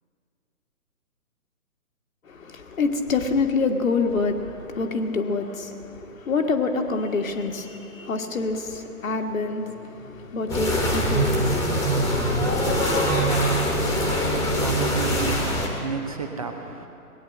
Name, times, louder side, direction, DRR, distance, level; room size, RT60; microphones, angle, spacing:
voice 1, 2.3-13.5, left 4 dB, 60° left, 5 dB, 1.6 m, -27 dB
sound 1, 10.5-15.7, equal, 5° left, 1.4 m, -23 dB
voice 2, 14.0-15.4 15.8-16.5, right 6 dB, 25° right, 5 dB, 0.6 m, -31 dB
19.0 x 9.4 x 7.6 m, 2.6 s
figure-of-eight pair, 145°, 45 cm